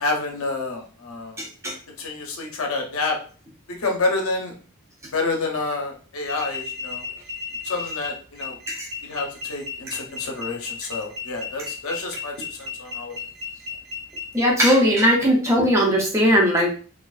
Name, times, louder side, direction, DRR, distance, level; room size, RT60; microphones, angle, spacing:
voice 1, 0.0-1.4 2.0-3.2 3.8-4.5 5.1-7.0 7.6-8.6 9.0-13.1, left 3 dB, 70° left, 2 dB, 0.6 m, -28 dB
voice 2, 1.4-1.8 8.7-8.9 9.9-10.0 14.3-16.8, equal, 10° right, -1 dB, 0.4 m, -19 dB
sound 1, 6.2-14.7, left 5 dB, 50° right, 0.7 m, -34 dB
2.4 x 2.3 x 2.3 m, 0.40 s
head